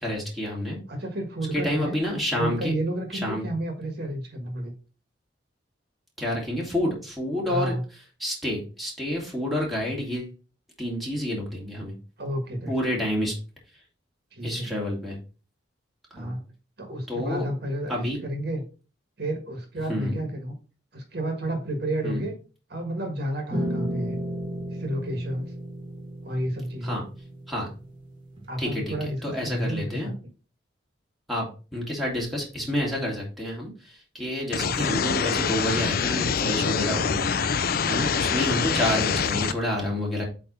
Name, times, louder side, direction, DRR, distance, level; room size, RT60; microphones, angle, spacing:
voice 1, 0.0-0.8 1.5-2.7 3.2-3.4 6.2-7.7 8.2-10.3 10.8-11.9 12.7-13.3 14.4-15.2 16.1-16.4 17.1-17.5 17.9-18.2 19.9-20.2 22.0-22.3 26.8-27.0 27.5-27.7 28.6-28.9 29.2-30.1 31.3-31.4 31.7-33.7 34.1-37.5 37.9-40.2, left 1 dB, ahead, -3 dB, 2.2 m, -28 dB
voice 2, 0.9-2.0 2.4-4.7 7.5-7.8 12.2-13.0 14.3-14.8 16.1-16.4 16.8-18.6 19.2-20.5 20.9-22.4 22.7-24.2 24.8-25.5 26.2-27.0 28.5-30.2, right 1 dB, 60° right, 4 dB, 1.6 m, -31 dB
sound 1, 23.5-28.5, right 1 dB, 25° right, 1.7 m, -34 dB
sound 2, 34.5-39.5, left 6 dB, 50° left, 0.5 m, -25 dB
8.2 x 3.4 x 4.3 m, 0.34 s
head